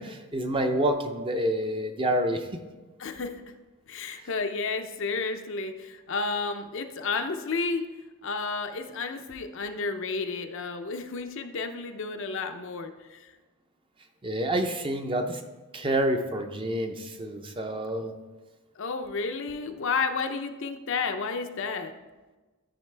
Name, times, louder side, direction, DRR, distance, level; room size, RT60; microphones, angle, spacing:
voice 1, 0.0-2.5 14.2-15.4 15.7-18.1, right 1 dB, 25° right, 5 dB, 0.6 m, -28 dB
voice 2, 3.0-3.3 3.9-7.9 8.2-13.3 18.8-22.0, left 4 dB, 60° left, 6 dB, 0.6 m, -31 dB
13.0 x 5.1 x 3.3 m, 1.2 s
head